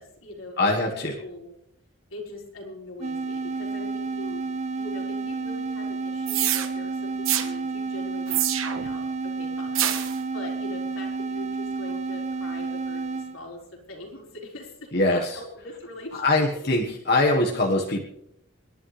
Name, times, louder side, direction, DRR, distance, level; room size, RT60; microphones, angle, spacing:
voice 1, 0.0-1.5 2.1-4.4 4.7-16.8, left 1 dB, 90° left, -2 dB, 4.2 m, -42 dB
voice 2, 0.6-1.2 14.9-15.4 16.2-18.0, left 2 dB, 55° left, 0 dB, 1.5 m, -23 dB
sound 1, 3.0-13.4, right 3 dB, 35° right, 0.7 m, -31 dB
sound 2, 6.3-6.7 7.2-7.5 8.3-8.9 9.7-10.2, right 11 dB, 85° right, 1.3 m, -25 dB
29.0 x 11.0 x 3.4 m, 0.77 s
head